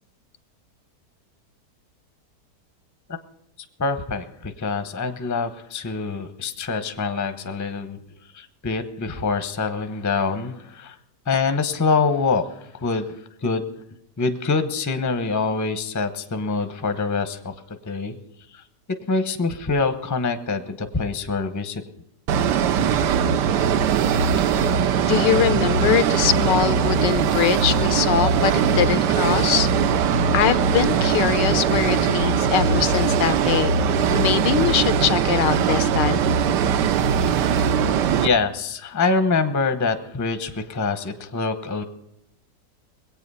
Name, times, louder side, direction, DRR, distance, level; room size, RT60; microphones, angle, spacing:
voice 1, 3.8-8.0 8.3-11.0 11.3-13.1 13.4-13.7 14.2-17.5 17.9-18.2 18.5-18.6 19.1-21.8 38.2-41.8, left 4 dB, 15° left, 9 dB, 0.6 m, -25 dB
sound 1, 22.3-38.3, right 7 dB, 80° right, 1.3 m, -20 dB
voice 2, 25.0-29.7 30.3-33.7 34.1-36.3, left 10 dB, 85° left, 13 dB, 1.4 m, -22 dB
21.0 x 8.7 x 5.5 m, 0.82 s
omnidirectional pair, 1.9 m